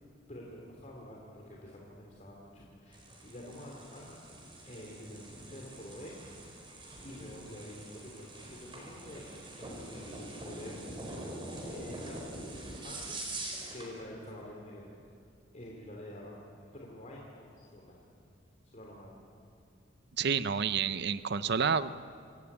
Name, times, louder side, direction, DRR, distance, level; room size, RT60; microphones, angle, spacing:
voice 1, 0.3-4.2 4.6-6.2 7.0-9.3 9.5-11.0 11.6-12.6 12.8-13.2 13.7-14.9 15.5-16.3 16.7-18.0 18.7-19.1, left 1 dB, 40° left, -2 dB, 2.9 m, -48 dB
sound 1, 2.9-13.9, right 1 dB, 25° right, 4.8 m, -44 dB
voice 2, 20.2-22.0, right 6 dB, 55° right, 14 dB, 0.6 m, -29 dB
27.0 x 14.0 x 8.7 m, 2.4 s
head